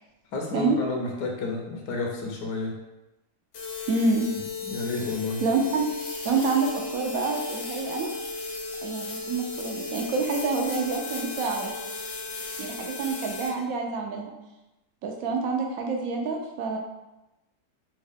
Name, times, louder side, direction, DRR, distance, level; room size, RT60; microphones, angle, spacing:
voice 1, 0.3-2.7 3.8-3.9 4.7-5.4, left 3 dB, 85° left, 0 dB, 1.3 m, -31 dB
sound 1, 3.5-13.5, left 3 dB, 60° left, 0.8 m, -35 dB
voice 2, 3.9-4.3 5.4-5.9 6.2-8.1 8.8-11.7 12.6-14.3 15.0-16.8, right 4 dB, 70° right, 1 dB, 0.9 m, -27 dB
3.5 x 2.2 x 3.4 m, 0.98 s
omnidirectional pair, 1.8 m